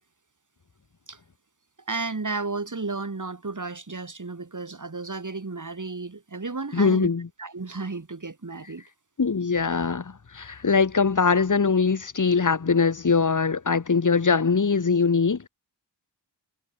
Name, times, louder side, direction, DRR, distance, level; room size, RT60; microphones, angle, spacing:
voice 1, 1.9-7.1 7.4-8.8, right 3 dB, 45° right, 6.1 m, -33 dB
voice 2, 6.7-7.3 9.2-15.5, left 5 dB, 45° left, 1.8 m, -22 dB
wide cardioid pair, 65°, 42 cm